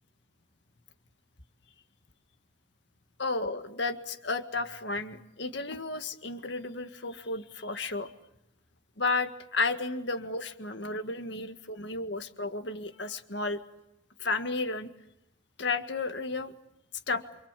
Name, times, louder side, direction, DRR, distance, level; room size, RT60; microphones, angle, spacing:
voice 1, 3.2-8.1 9.0-13.6 14.2-14.9 15.6-16.5 17.1-17.2, left 3 dB, 65° left, 7 dB, 1.8 m, -32 dB
28.0 x 26.5 x 7.6 m, 0.83 s
head